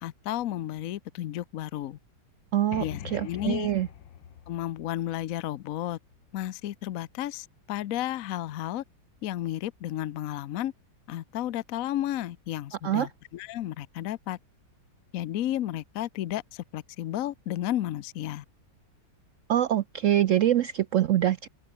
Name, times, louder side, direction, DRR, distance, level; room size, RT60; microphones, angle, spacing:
voice 1, 0.0-2.0 2.8-3.7 4.5-6.0 6.3-8.8 9.2-10.7 11.1-14.4 15.1-18.4, left 13 dB, 65° left, 0.9 m, -32 dB
voice 2, 2.5-3.9 12.8-13.1 19.5-21.5, right 12 dB, 80° right, 0.6 m, -24 dB
sound 1, 2.7-6.4, left 10 dB, 90° left, 2.0 m, -44 dB
open air
omnidirectional pair, 2.0 m